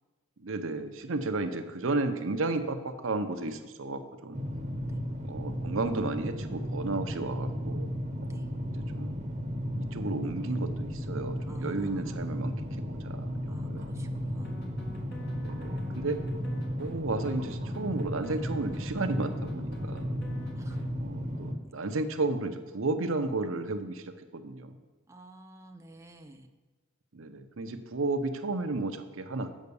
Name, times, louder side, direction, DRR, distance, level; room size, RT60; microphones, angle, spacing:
voice 1, 0.4-4.4 5.3-7.9 8.8-9.2 9.8-12.5 12.9-13.9 15.4-16.2 16.8-20.2 21.0-24.8 27.1-29.5, right 2 dB, 70° right, 8 dB, 0.7 m, -33 dB
sound 1, 4.3-21.6, equal, 35° right, 0.9 m, -35 dB
voice 2, 11.5-12.2 13.5-14.6 20.5-20.8 25.1-26.5, right 1 dB, 15° right, 4 dB, 0.5 m, -52 dB
sound 2, 14.4-16.9 17.2-20.8, left 1 dB, 55° left, 1.5 m, -48 dB
8.2 x 5.7 x 6.9 m, 1.3 s
head